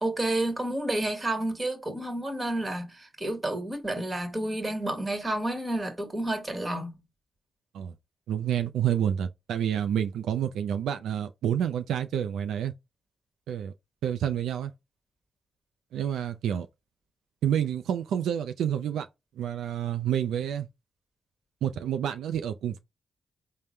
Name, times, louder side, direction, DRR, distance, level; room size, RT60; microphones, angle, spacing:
voice 1, 0.0-6.9, right 1 dB, 25° right, 1.4 m, -30 dB
voice 2, 8.3-12.7 13.5-13.7 14.0-14.7 15.9-16.7 17.4-19.1 19.4-20.7 21.6-22.8, right 9 dB, 85° right, 0.3 m, -28 dB
3.6 x 2.1 x 4.3 m
cardioid pair, 70°, 0 cm